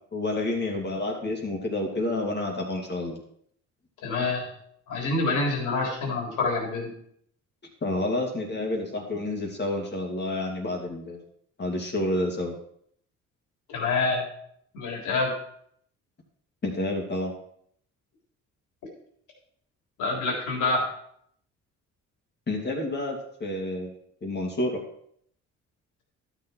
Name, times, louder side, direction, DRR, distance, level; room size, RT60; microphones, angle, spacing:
voice 1, 0.1-3.2 7.8-11.2 11.6-12.6 16.6-17.3 22.5-24.0 24.2-24.8, left 2 dB, 35° left, 0 dB, 2.3 m, -29 dB
voice 2, 4.0-4.5 4.9-6.9 13.7-14.3 14.7-15.3 20.0-20.8, left 3 dB, 85° left, -1 dB, 3.6 m, -26 dB
12.0 x 7.1 x 4.5 m, 0.67 s
cardioid pair, 90°, 30 cm